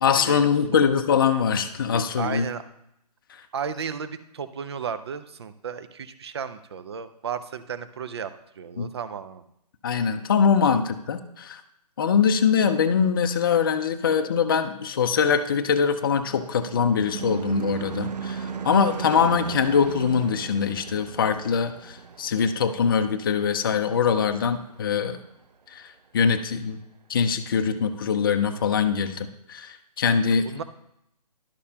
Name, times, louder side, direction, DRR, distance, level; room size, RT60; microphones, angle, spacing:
voice 1, 0.0-2.5 8.8-8.9 9.8-11.6 12.0-25.2 25.7-25.9 26.1-26.8 27.1-30.5, left 6 dB, 35° left, 7 dB, 0.5 m, -23 dB
voice 2, 2.2-2.6 3.5-8.3 8.6-9.4 30.3-30.6, right 7 dB, 40° right, 12 dB, 0.5 m, -34 dB
Car passing by / Truck / Engine, 15.6-24.3, right 6 dB, 85° right, 0.6 m, -36 dB
11.5 x 6.5 x 2.8 m, 0.80 s
hypercardioid pair, 160°, 21 cm